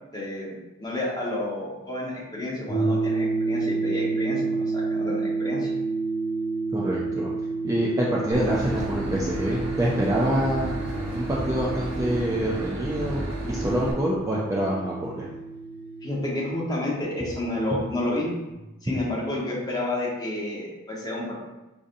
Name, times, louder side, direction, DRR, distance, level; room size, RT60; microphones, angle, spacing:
voice 1, 0.1-5.7 16.0-18.3 18.8-21.4, left 1 dB, 20° left, -5 dB, 0.9 m, -30 dB
sound 1, 2.7-18.5, right 3 dB, 35° left, 0.6 m, -30 dB
voice 2, 6.7-7.3 7.6-10.8 11.1-15.3, right 1 dB, 15° right, -4 dB, 0.4 m, -26 dB
Boat Water vehicle / Engine, 8.3-13.9, right 1 dB, 60° right, 0.9 m, -32 dB
4.9 x 2.7 x 2.5 m, 1.0 s
head